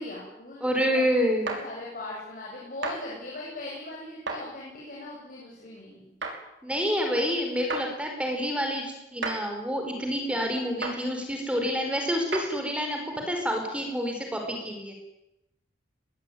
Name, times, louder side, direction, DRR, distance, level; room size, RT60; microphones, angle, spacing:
voice 1, 0.0-6.1, left 1 dB, 45° left, -4 dB, 7.9 m, -40 dB
voice 2, 0.6-1.5 6.6-14.9, equal, 5° right, 2 dB, 5.0 m, -28 dB
sound 1, 1.5-1.6 2.8-3.0 4.3-4.4 6.2-6.4 7.7-7.9 9.2-9.4 10.8-11.0 12.3-12.5, right 3 dB, 70° right, 5.6 m, -31 dB
22.0 x 20.5 x 9.5 m, 0.90 s
head